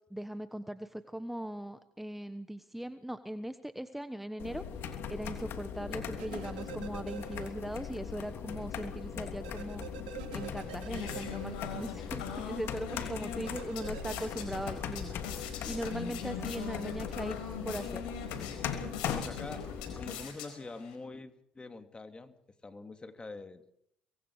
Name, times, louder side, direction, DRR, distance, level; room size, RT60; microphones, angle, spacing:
voice 1, 0.1-4.6 5.1-9.9 10.3-18.0, right 1 dB, 5° right, 10 dB, 1.2 m, -39 dB
sound 1, 4.4-20.2, left 7 dB, 65° left, 3.1 m, -40 dB
sound 2, 6.2-7.9 8.2-8.3 9.4-12.3 13.4-14.2, right 11 dB, 90° right, 1.6 m, -47 dB
sound 3, 10.4-20.9, left 7 dB, 90° left, 4.7 m, -43 dB
voice 2, 19.0-22.3 22.6-23.7, left 3 dB, 20° left, 7 dB, 2.6 m, -45 dB
25.5 x 23.0 x 4.9 m, 0.73 s
supercardioid pair, 70°, 4 cm